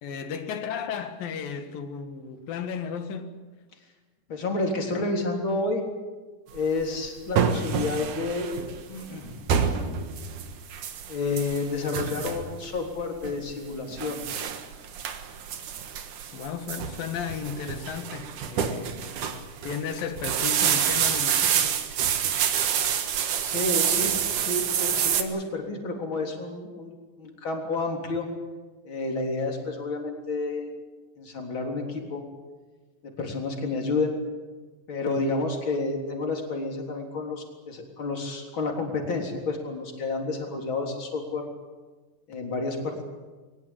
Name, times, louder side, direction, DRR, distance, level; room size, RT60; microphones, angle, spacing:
voice 1, 0.0-3.4 16.3-19.2 19.6-21.8, left 7 dB, 75° left, 3.5 m, -34 dB
voice 2, 4.3-5.8 6.5-8.5 8.9-9.4 11.1-14.5 22.7-22.9 23.4-28.3 28.8-30.7 31.2-32.2 33.0-34.2 34.9-41.5 42.3-43.0, left 3 dB, 35° left, 4.1 m, -30 dB
sound 1, 6.6-25.2, right 8 dB, 65° right, 2.8 m, -27 dB
22.0 x 20.0 x 8.8 m
omnidirectional pair, 4.1 m